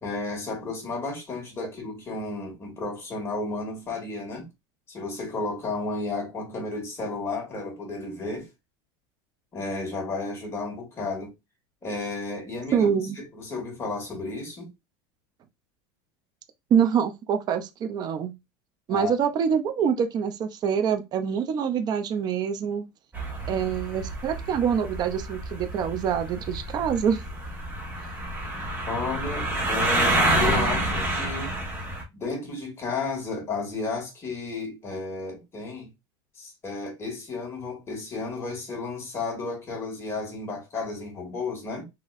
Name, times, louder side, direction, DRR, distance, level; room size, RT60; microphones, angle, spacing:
voice 1, 0.0-4.5 4.9-8.5 9.5-11.3 11.8-12.9 13.3-14.7 18.9-19.1 28.9-31.5 32.1-35.9 36.4-41.8, left 3 dB, 20° left, 2.2 m, -33 dB
voice 2, 12.7-13.2 16.7-18.3 18.9-22.9 23.5-27.2, right 7 dB, 35° right, 0.6 m, -25 dB
sound 1, 23.1-32.0, right 1 dB, 15° right, 1.5 m, -28 dB
4.1 x 2.9 x 2.5 m
supercardioid pair, 130°, 12 cm